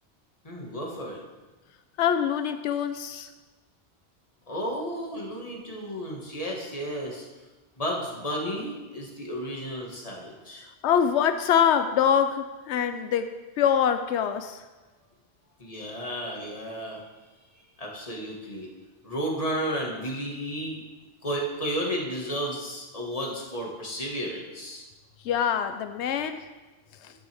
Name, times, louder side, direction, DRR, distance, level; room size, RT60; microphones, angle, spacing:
voice 1, 0.4-1.2 4.5-7.3 7.8-10.6 15.6-17.0 17.8-18.7 19.0-20.8 21.2-24.8, equal, 35° left, -1 dB, 1.8 m, -33 dB
voice 2, 2.0-3.3 10.8-13.3 13.6-14.6 25.2-26.4 27.0-27.1, left 8 dB, 90° left, 9 dB, 0.9 m, -24 dB
12.0 x 9.3 x 3.5 m, 1.2 s
omnidirectional pair, 1.1 m